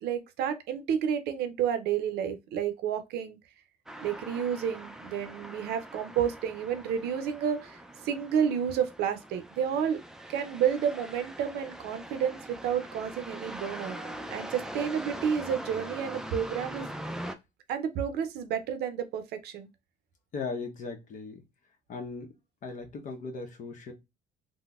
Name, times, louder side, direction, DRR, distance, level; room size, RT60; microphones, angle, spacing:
voice 1, 0.0-3.4 4.0-7.8 8.0-10.0 10.3-14.0 14.3-16.9 17.7-19.7, right 8 dB, 75° right, 0.5 m, -30 dB
sound 1, 3.9-17.3, right 1 dB, 5° right, 0.3 m, -42 dB
voice 2, 20.3-21.4 21.9-22.3 22.6-23.9, left 4 dB, 50° left, 0.8 m, -38 dB
3.8 x 2.1 x 2.3 m
cardioid pair, 110°, 17 cm